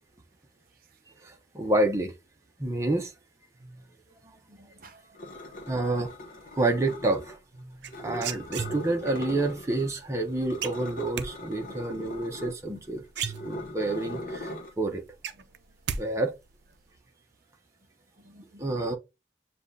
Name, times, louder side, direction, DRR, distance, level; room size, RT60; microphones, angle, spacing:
voice 1, 1.2-2.1 2.6-3.1 4.2-4.3 5.7-6.1 6.5-7.4 8.0-15.0 16.0-16.3 18.6-19.0, right 2 dB, 15° right, 0.8 m, -28 dB
voice 2, 4.5-5.3 7.6-7.9 11.7-12.0 18.2-18.6, right 1 dB, 50° right, 0.8 m, -51 dB
sound 1, 5.2-7.4 7.9-9.9 10.2-14.7, left 1 dB, 50° left, 1.1 m, -40 dB
sound 2, 7.8-9.1 10.6-11.3 12.7-12.8 13.1-13.9 14.3-14.4 14.8-16.0 16.3-16.7, right 7 dB, 80° right, 0.5 m, -34 dB
7.1 x 2.4 x 2.7 m
head